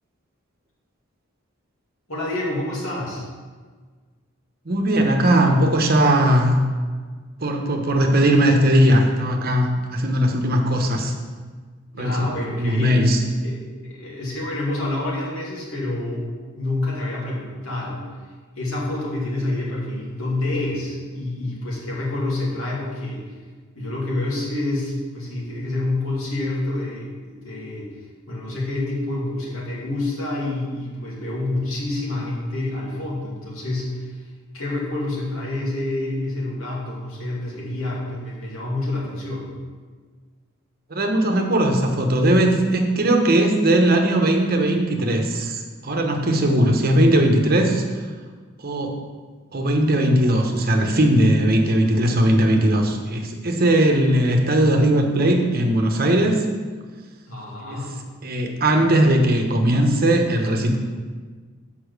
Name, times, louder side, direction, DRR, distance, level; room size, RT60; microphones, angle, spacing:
voice 1, 2.1-3.3 11.9-13.0 13.4-13.6 13.9-16.3 16.5-18.0 18.6-23.2 23.7-27.9 28.3-34.2 34.5-39.5 57.3-57.9, left 2 dB, 90° left, -4 dB, 2.4 m, -27 dB
voice 2, 4.6-6.6 7.4-11.1 12.0-12.2 12.6-13.2 40.9-47.8 48.6-49.0 49.5-56.4 57.6-57.8 58.2-60.8, right 1 dB, 45° right, 3 dB, 1.0 m, -19 dB
6.9 x 5.5 x 6.5 m, 1.5 s
head